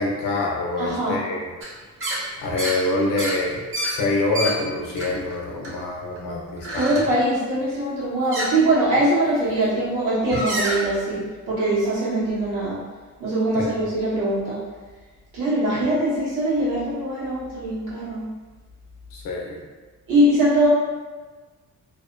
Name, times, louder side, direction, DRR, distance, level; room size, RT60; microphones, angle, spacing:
voice 1, 0.0-1.5 2.4-7.0 10.3-10.4 13.5-13.7 19.1-19.7, left 2 dB, 85° left, -1 dB, 0.6 m, -26 dB
voice 2, 0.8-1.2 6.8-12.8 13.2-14.6 15.3-18.2 20.1-20.7, right 1 dB, 85° right, -8 dB, 1.2 m, -22 dB
sound 1, 1.6-1.7 2.0-2.2 2.6-2.8 3.2-4.5 5.0-5.4 5.6-6.2 6.6-7.1 8.3-8.5 9.4-9.6 10.2-10.8, right 1 dB, 40° right, 0.7 m, -28 dB
2.6 x 2.2 x 2.5 m, 1.3 s
cardioid pair, 120°, 32 cm